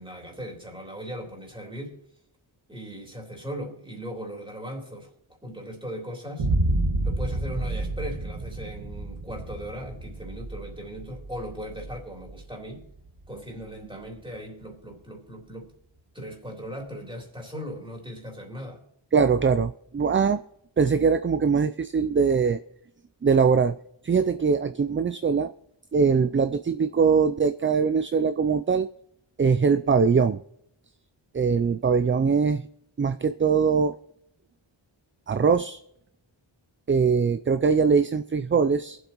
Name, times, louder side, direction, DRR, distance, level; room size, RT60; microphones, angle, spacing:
voice 1, 0.0-2.0 2.7-5.1 5.4-6.5 7.0-12.9 13.3-15.7 16.1-18.8, equal, 10° right, 3.5 m, -38 dB
Boom, 6.4-14.2, right 2 dB, 80° right, 1.6 m, -30 dB
voice 2, 19.1-20.4 20.8-22.6 23.2-23.8 24.0-25.5 25.9-28.9 29.4-30.4 31.3-32.6 33.0-33.9 35.3-35.8 36.9-39.0, right 5 dB, 30° right, 0.4 m, -22 dB
22.5 x 8.1 x 3.0 m
wide cardioid pair, 50°, 49 cm